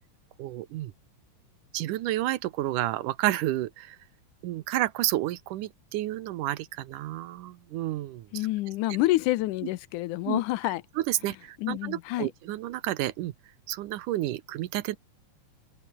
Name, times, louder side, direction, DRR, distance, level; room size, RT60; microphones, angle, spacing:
voice 1, 0.4-0.9 1.7-4.0 4.4-8.3 10.3-10.4 11.0-13.3 13.7-15.0, right 15 dB, 90° right, 2.5 m, -30 dB
voice 2, 8.3-10.8 11.6-12.3, left 17 dB, 85° left, 2.2 m, -28 dB
omnidirectional pair, 3.5 m